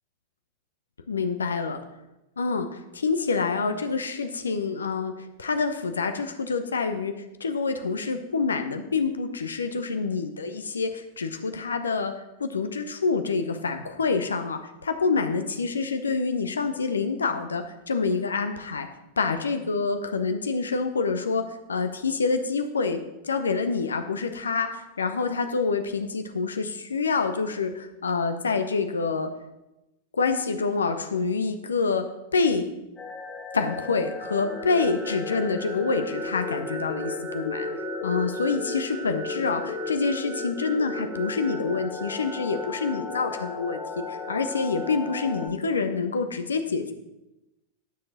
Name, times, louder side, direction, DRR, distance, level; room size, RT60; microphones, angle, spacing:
voice 1, 1.1-1.8 2.4-12.1 12.4-18.9 19.2-29.3 30.1-32.1 32.3-32.7 33.5-37.7 38.0-46.9, left 4 dB, 70° left, 8 dB, 0.8 m, -27 dB
sound 1, 33.0-45.5, left 2 dB, 20° left, 1.2 m, -34 dB
11.5 x 6.7 x 4.2 m, 0.94 s
figure-of-eight pair, 90°, 0 cm